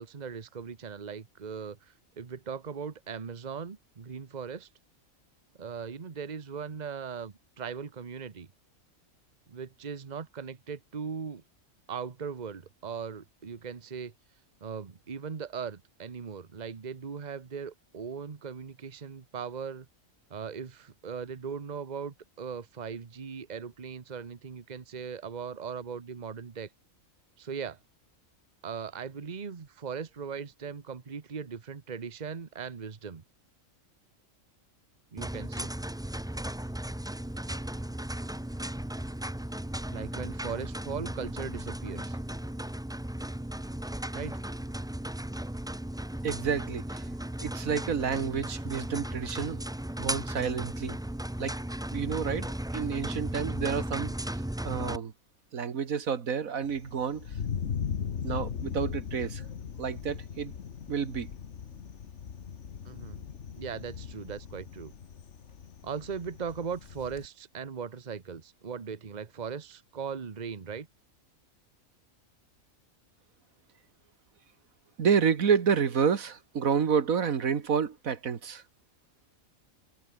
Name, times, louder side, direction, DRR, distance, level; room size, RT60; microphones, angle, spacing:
voice 1, 0.0-1.8 2.2-4.7 5.6-8.5 9.5-11.4 11.9-14.1 14.6-19.9 20.3-26.7 27.4-27.8 28.6-33.2 35.1-35.7 39.9-42.2 44.1-44.4 54.0-54.1 62.8-63.2 63.6-64.9 65.8-70.9, right 6 dB, 35° right, 1.2 m, -39 dB
sound 1, 35.2-55.0, right 1 dB, 5° right, 0.3 m, -36 dB
voice 2, 46.2-47.1 47.4-49.6 50.0-51.0 51.4-51.5 51.9-54.4 54.6-55.1 55.5-57.3 58.2-59.4 59.8-60.5 60.9-61.3 75.0-78.6, right 6 dB, 85° right, 1.9 m, -29 dB
Thunder, 56.6-67.3, left 7 dB, 60° left, 1.5 m, -38 dB
omnidirectional pair, 1.4 m